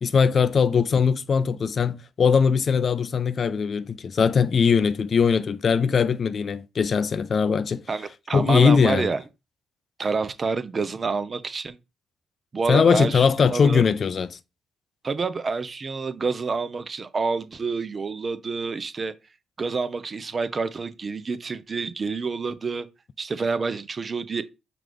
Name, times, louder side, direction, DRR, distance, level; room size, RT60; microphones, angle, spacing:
voice 1, 0.0-7.8 8.3-9.1 12.7-14.4, left 6 dB, 50° left, 0.3 m, -20 dB
voice 2, 7.9-9.2 10.0-11.8 12.5-13.8 15.0-19.1 19.6-22.9 23.2-24.4, right 4 dB, 40° right, 0.5 m, -28 dB
5.8 x 2.5 x 3.3 m
hypercardioid pair, 40°, 0 cm